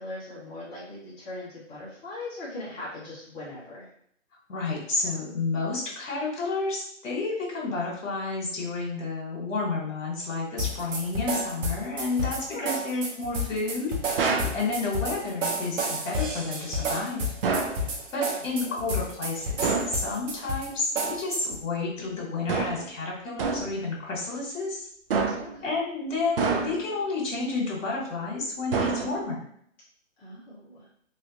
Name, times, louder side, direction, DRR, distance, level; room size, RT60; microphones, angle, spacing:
voice 1, 0.0-3.9 12.3-12.8 18.4-18.8 25.4-25.8 30.2-30.9, left 2 dB, 15° left, -9 dB, 1.1 m, -40 dB
voice 2, 4.5-17.3 18.1-24.9 25.6-29.4, left 3 dB, 75° left, -3 dB, 1.5 m, -31 dB
sound 1, 10.6-21.6, equal, 75° right, 0.9 m, -31 dB
sound 2, 14.2-14.6 17.4-17.8 19.6-20.0 22.5-22.9 23.4-23.8 25.1-25.6 26.4-27.0 28.7-29.4, right 4 dB, 50° right, 0.5 m, -27 dB
3.1 x 2.7 x 2.8 m, 0.65 s
hypercardioid pair, 165°, 38 cm